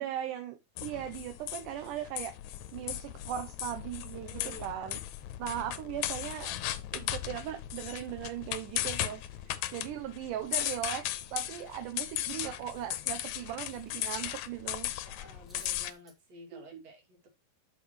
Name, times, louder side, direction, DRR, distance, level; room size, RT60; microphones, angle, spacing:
voice 1, 0.0-2.3 2.7-5.0 5.4-6.5 6.9-14.9 16.5-16.8, right 11 dB, 75° right, 2.2 m, -38 dB
sound 1, 0.8-15.9, left 13 dB, 80° left, 1.7 m, -37 dB
voice 2, 4.1-4.7 5.9-6.0 15.0-17.3, right 2 dB, 50° right, 3.4 m, -51 dB
Cutlery silverware, 11.2-14.3 14.6-14.7 15.2-16.2, equal, ahead, 0.5 m, -60 dB
12.5 x 4.6 x 3.0 m
omnidirectional pair, 4.0 m